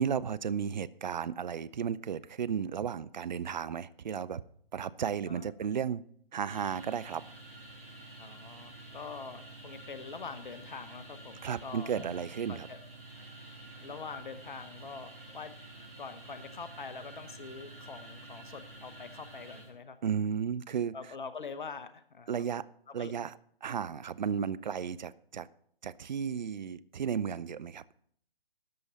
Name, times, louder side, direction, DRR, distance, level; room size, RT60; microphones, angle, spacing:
voice 1, 0.0-4.4 4.7-6.0 6.3-7.2 11.4-12.7 20.0-20.9 22.3-22.7 22.9-25.5 25.8-27.8, right 7 dB, 50° right, 17 dB, 0.5 m, -34 dB
sound 1, 6.5-19.7, right 2 dB, 70° right, 5.3 m, -49 dB
voice 2, 8.2-11.9 12.5-12.8 13.8-15.5 16.0-20.2 20.9-22.5 22.9-23.1, left 5 dB, 55° left, 12 dB, 0.9 m, -44 dB
13.0 x 9.3 x 4.2 m, 0.64 s
figure-of-eight pair, 140°, 29 cm